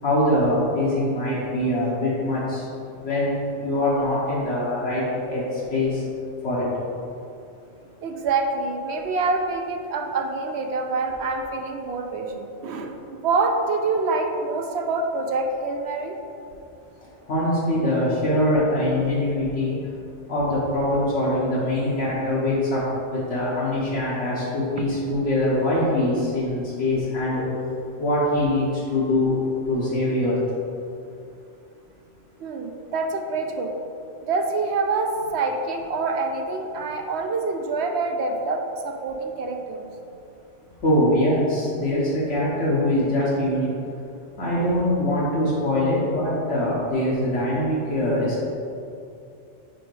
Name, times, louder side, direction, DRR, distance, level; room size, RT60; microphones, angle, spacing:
voice 1, 0.0-2.7 3.0-5.0 5.3-6.0 6.4-6.7 17.3-19.7 20.3-22.8 23.1-27.5 28.0-29.4 29.7-30.4 40.8-43.7 44.4-48.4, left 1 dB, 80° left, -8 dB, 1.4 m, -23 dB
voice 2, 8.0-12.9 13.2-16.2 32.4-33.7 34.2-39.9, right 3 dB, 70° right, 4 dB, 0.9 m, -26 dB
5.1 x 4.9 x 4.6 m, 2.6 s
omnidirectional pair, 1.2 m